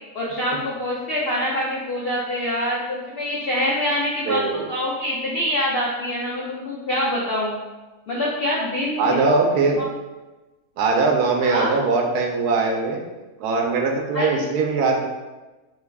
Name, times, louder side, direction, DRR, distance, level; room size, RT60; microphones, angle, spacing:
voice 1, 0.1-7.5 8.1-9.2 9.8-9.9 11.4-11.7 14.1-14.3, left 1 dB, 80° left, -5 dB, 0.5 m, -25 dB
voice 2, 4.2-4.7 9.0-9.8 10.8-13.0 13.4-15.1, right 4 dB, 80° right, 1 dB, 1.1 m, -21 dB
3.3 x 2.3 x 3.3 m, 1.2 s
omnidirectional pair, 1.6 m